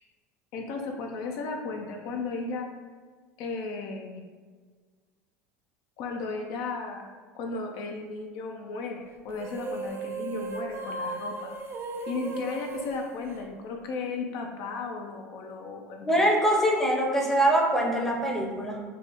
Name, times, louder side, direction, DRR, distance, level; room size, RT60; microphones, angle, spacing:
voice 1, 0.5-2.7 3.4-4.2 6.0-11.5 12.1-16.3, left 4 dB, 60° left, 2 dB, 0.4 m, -35 dB
sound 1, 9.3-14.0, right 3 dB, 35° right, 0.4 m, -36 dB
voice 2, 16.0-18.8, right 1 dB, 5° left, -1 dB, 0.6 m, -23 dB
3.4 x 2.0 x 2.9 m, 1.5 s
hypercardioid pair, 85°, 8 cm